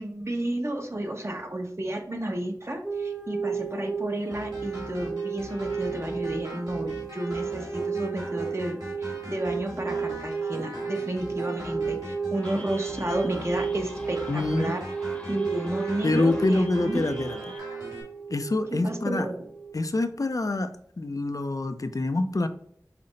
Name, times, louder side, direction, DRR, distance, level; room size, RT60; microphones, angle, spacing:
voice 1, 0.0-14.8 15.3-17.0 18.8-19.4, right 1 dB, 40° right, 3 dB, 0.8 m, -32 dB
sound 1, 2.8-19.8, right 6 dB, 10° right, 0.4 m, -33 dB
sound 2, 4.3-18.0, equal, 65° right, 1.9 m, -41 dB
sound 3, 12.4-17.6, equal, 15° left, 0.8 m, -47 dB
voice 2, 14.3-14.7 16.0-17.4 18.3-19.3 19.7-22.5, left 2 dB, 55° left, 9 dB, 0.4 m, -26 dB
5.6 x 2.1 x 3.8 m, 0.65 s
wide cardioid pair, 45°, 7 cm